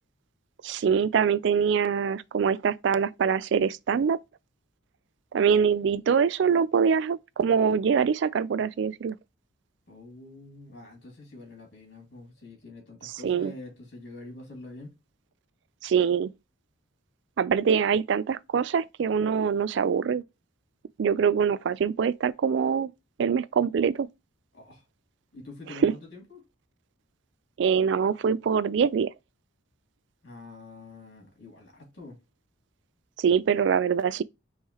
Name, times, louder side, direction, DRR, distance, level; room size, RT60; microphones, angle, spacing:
voice 1, 0.6-4.2 5.3-9.2 13.2-13.5 15.8-16.3 17.4-20.2 21.0-22.9 23.2-24.1 25.8-25.9 27.6-29.1 33.2-34.2, right 6 dB, 60° right, 0.3 m, -24 dB
voice 2, 9.9-14.9 24.5-24.8 25.3-26.4 30.2-32.2, left 2 dB, 55° left, 2.9 m, -46 dB
5.4 x 3.2 x 3.0 m
head